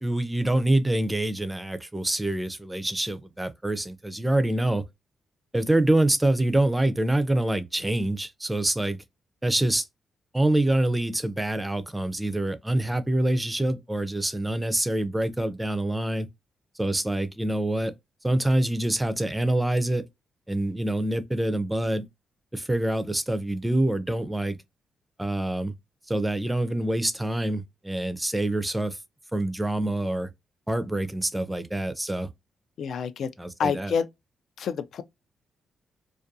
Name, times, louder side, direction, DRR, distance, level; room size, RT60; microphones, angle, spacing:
voice 1, 0.0-4.8 5.5-9.0 9.4-9.9 10.3-16.3 16.8-17.9 18.2-20.0 20.5-22.0 22.5-24.6 25.2-25.7 26.1-29.0 29.3-30.3 30.7-32.3 33.4-33.9, right 1 dB, 10° right, 0.4 m, -26 dB
voice 2, 32.8-33.3 33.6-34.1 34.6-35.0, left 6 dB, 70° left, 0.3 m, -27 dB
2.4 x 2.2 x 2.6 m
cardioid pair, 105°, 0 cm